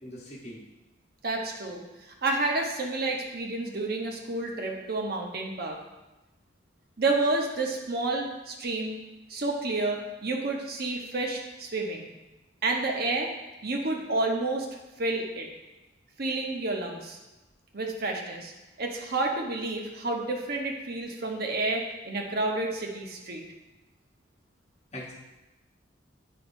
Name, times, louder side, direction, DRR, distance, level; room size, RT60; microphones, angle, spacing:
voice 1, 0.0-0.6 24.9-25.1, left 1 dB, 35° left, -5 dB, 1.1 m, -41 dB
voice 2, 1.2-1.8 2.2-5.8 7.0-9.0 9.3-12.1 12.6-13.3 13.6-14.7 15.0-15.5 16.2-17.2 17.7-18.5 18.8-23.4, right 2 dB, 55° right, 0 dB, 1.0 m, -30 dB
9.5 x 5.6 x 2.7 m, 1.1 s
head